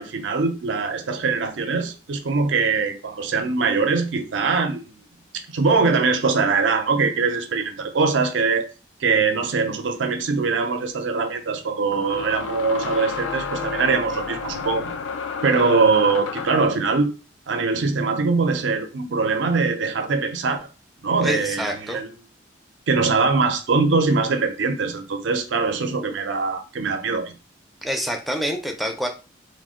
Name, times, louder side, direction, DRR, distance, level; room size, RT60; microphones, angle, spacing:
voice 1, 0.0-4.9 5.5-8.7 9.0-14.9 15.4-17.1 17.5-20.7 21.0-22.1 22.9-27.3, right 4 dB, 80° right, 0.5 m, -22 dB
sound 1, 10.0-10.1 11.9-16.8, left 5 dB, 85° left, 0.3 m, -31 dB
voice 2, 21.2-22.0 27.8-29.1, equal, ahead, 0.4 m, -27 dB
2.4 x 2.1 x 3.6 m
head